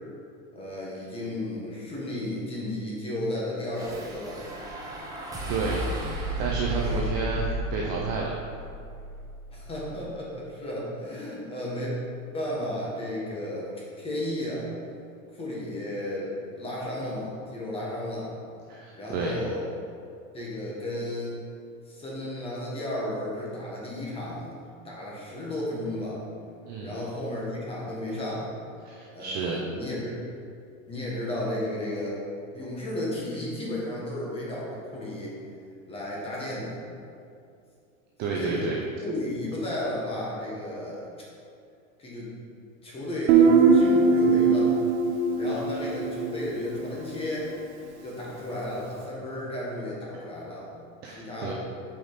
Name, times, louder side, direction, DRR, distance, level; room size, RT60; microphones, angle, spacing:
voice 1, 0.5-4.4 9.5-11.9 12.3-13.7 14.0-14.7 15.3-18.3 18.9-19.6 20.3-21.3 21.9-24.6 24.8-26.2 26.8-28.5 29.1-30.2 30.9-32.2 32.5-35.3 35.9-36.8 38.3-41.0 42.0-42.3 42.8-44.8 45.4-47.5 48.0-50.7 51.1-51.5, left 1 dB, 15° left, -5 dB, 1.5 m, -33 dB
sound 1, 3.7-10.1, right 1 dB, 10° right, 0.8 m, -34 dB
voice 2, 5.5-8.3 18.7-19.4 26.7-26.9 28.8-29.7 38.2-38.8 51.0-51.5, right 4 dB, 25° right, -2 dB, 0.5 m, -31 dB
Guitar, 43.3-46.9, right 4 dB, 55° right, 0.8 m, -21 dB
7.6 x 5.1 x 4.1 m, 2.5 s
supercardioid pair, 155°, 42 cm